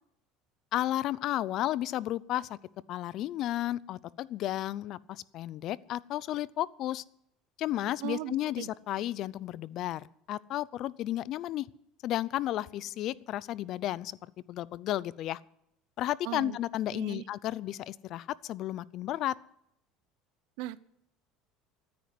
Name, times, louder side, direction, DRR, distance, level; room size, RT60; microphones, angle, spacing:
voice 1, 0.7-2.6 2.9-7.0 7.6-11.7 12.0-14.2 14.5-15.4 16.0-19.3, left 13 dB, 50° left, 21 dB, 0.5 m, -33 dB
voice 2, 8.0-8.7 16.2-16.6 16.9-17.2 20.6-20.8, right 16 dB, 75° right, 18 dB, 0.7 m, -38 dB
14.5 x 9.5 x 7.7 m, 0.75 s
cardioid pair, 135°, 0 cm